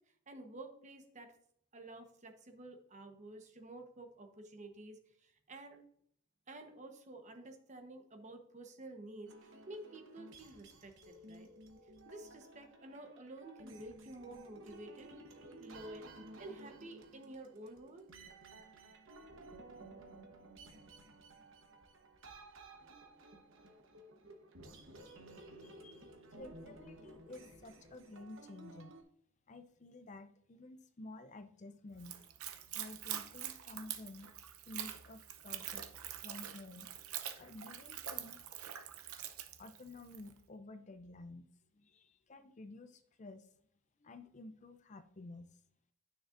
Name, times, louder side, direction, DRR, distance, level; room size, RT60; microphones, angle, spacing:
voice 1, 0.3-1.3 1.7-5.8 6.5-9.3 9.7-11.5 12.1-15.1 15.6-18.0, right 2 dB, 35° right, 5 dB, 1.0 m, -51 dB
sound 1, 9.3-29.0, right 2 dB, 60° right, 1.1 m, -55 dB
voice 2, 25.6-28.9 29.5-32.2 32.6-34.3 34.7-35.9 36.2-37.0 37.4-38.4 39.6-41.5 41.7-43.5 44.0-45.5, left 2 dB, 35° left, 10 dB, 0.4 m, -52 dB
Splash splatter / Trickle dribble, 32.0-40.3, right 11 dB, 75° right, 0.7 m, -45 dB
9.4 x 6.4 x 2.5 m, 0.66 s
head